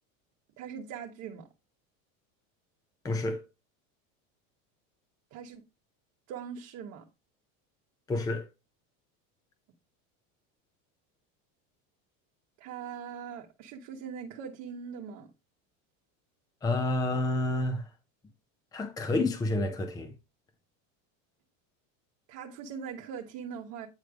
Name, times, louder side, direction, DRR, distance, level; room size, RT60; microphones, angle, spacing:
voice 1, 0.6-1.5 5.3-5.6 6.3-7.1 12.6-15.3 22.3-23.9, right 7 dB, 50° right, 1.2 m, -41 dB
voice 2, 3.0-3.4 8.1-8.5 16.6-17.9 18.7-20.1, left 2 dB, 10° left, 0.6 m, -29 dB
9.1 x 3.2 x 5.0 m
supercardioid pair, 145°, 40 cm